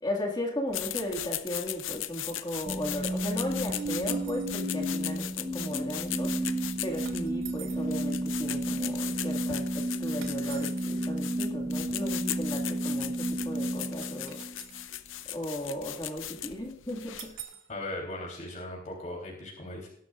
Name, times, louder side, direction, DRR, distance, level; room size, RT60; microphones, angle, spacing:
voice 1, 0.0-14.4 15.3-17.3, left 1 dB, 20° left, 1 dB, 2.0 m, -36 dB
sound 1, 0.7-17.4, left 12 dB, 80° left, 0.7 m, -38 dB
sound 2, 2.6-14.8, right 1 dB, 35° right, 5.0 m, -32 dB
sound 3, 3.7-4.5 7.1-7.9 10.2-10.9 14.0-15.0 17.2-17.7, right 10 dB, 85° right, 2.0 m, -47 dB
voice 2, 17.7-19.9, left 1 dB, 40° left, -1 dB, 3.5 m, -38 dB
19.0 x 11.5 x 2.5 m, 0.65 s
head